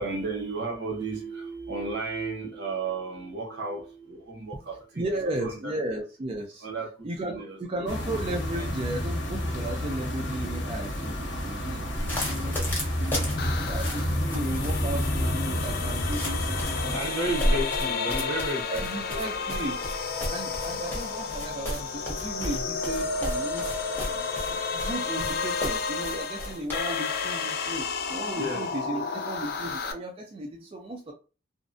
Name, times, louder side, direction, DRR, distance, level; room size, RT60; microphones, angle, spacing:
voice 1, 0.0-5.0 5.4-5.7 6.6-7.9 12.0-12.5 16.9-19.2 28.2-28.6, right 2 dB, 65° right, 0.8 m, -33 dB
voice 2, 5.0-6.7 7.0-11.9 12.3-12.6 13.0-13.4 13.6-17.1 17.4-17.6 18.7-19.8 20.3-31.1, right 1 dB, 30° right, 0.3 m, -35 dB
sound 1, 7.9-17.0, equal, 70° left, 0.8 m, -30 dB
sound 2, 11.9-26.8, equal, 10° left, 0.7 m, -34 dB
sound 3, 13.4-29.9, left 5 dB, 55° left, 0.3 m, -32 dB
2.5 x 2.0 x 2.5 m
head